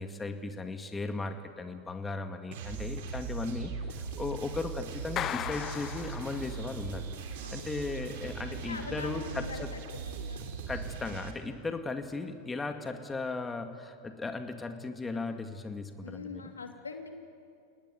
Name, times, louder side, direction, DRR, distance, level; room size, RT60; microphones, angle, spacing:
voice 1, 0.0-7.1 7.5-9.7 10.7-16.4, left 3 dB, 15° left, 6 dB, 2.2 m, -37 dB
sound 1, 2.5-11.3, right 5 dB, 65° right, 3.3 m, -39 dB
Clapping, 5.2-6.9, left 11 dB, 35° left, 0.5 m, -37 dB
voice 2, 7.4-7.8 8.4-10.7 11.6-11.7 16.0-17.1, left 4 dB, 90° left, 4 dB, 2.8 m, -43 dB
30.0 x 19.0 x 9.4 m, 2.4 s
hypercardioid pair, 95°, 0 cm